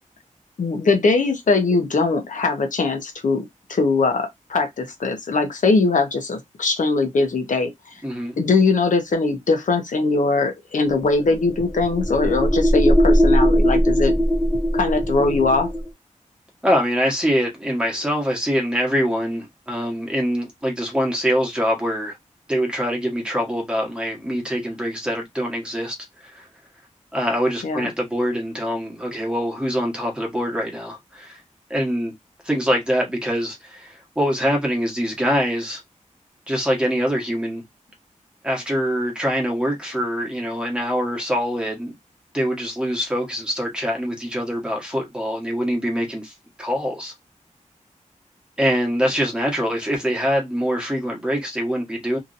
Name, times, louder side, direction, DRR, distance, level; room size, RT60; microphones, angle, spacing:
voice 1, 0.6-7.7 8.4-14.1 14.7-15.7 27.6-27.9, left 3 dB, 75° left, 0.8 m, -21 dB
voice 2, 8.0-8.4 16.6-22.1 22.5-26.0 26.2-26.5 27.1-31.4 31.7-32.1 32.4-35.8 36.5-37.6 38.4-41.9 42.3-47.1 48.6-52.2, equal, 5° right, 1.2 m, -24 dB
sound 1, 11.2-15.9, equal, 15° left, 0.7 m, -19 dB
2.9 x 2.7 x 2.5 m
wide cardioid pair, 115°, 13 cm